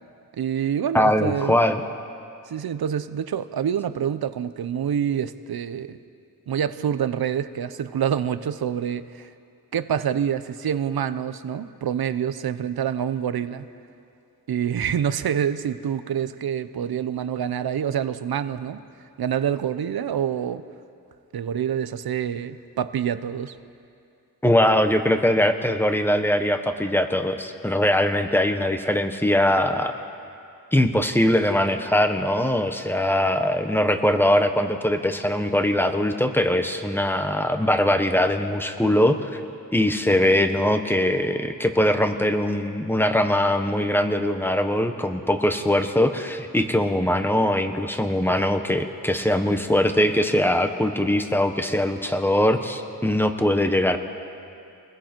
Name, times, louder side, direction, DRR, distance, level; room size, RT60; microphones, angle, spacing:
voice 1, 0.4-1.6 2.5-6.0 6.5-9.3 9.7-13.7 14.5-18.8 19.2-20.6 21.3-23.6, right 8 dB, 85° right, 13 dB, 0.8 m, -26 dB
voice 2, 0.9-1.8 24.4-29.9 30.7-39.4 39.7-54.0, left 1 dB, 5° left, 7 dB, 1.3 m, -21 dB
28.0 x 20.5 x 4.5 m, 2.5 s
wide cardioid pair, 85°, 36 cm